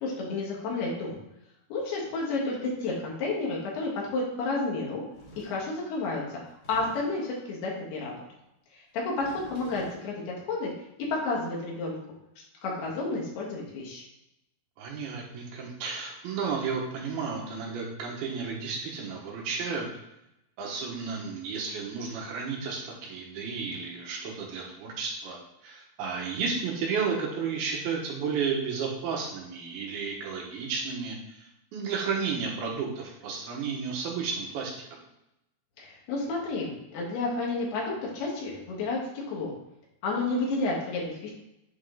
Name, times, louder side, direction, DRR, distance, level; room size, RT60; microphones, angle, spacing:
voice 1, 0.0-1.2 1.7-5.0 5.3-6.4 6.7-8.2 8.7-10.7 11.0-12.0 12.6-14.0 35.8-39.0 39.3-39.5 40.0-41.3, left 3 dB, 75° left, -3 dB, 3.5 m, -31 dB
sound 1, 5.1-5.7 6.5-7.3 9.0-10.1, left 1 dB, 50° left, 1.8 m, -48 dB
voice 2, 14.8-19.9 20.6-31.5 31.7-35.0, right 5 dB, 75° right, -1 dB, 2.9 m, -32 dB
8.5 x 3.6 x 3.7 m, 0.85 s
omnidirectional pair, 4.7 m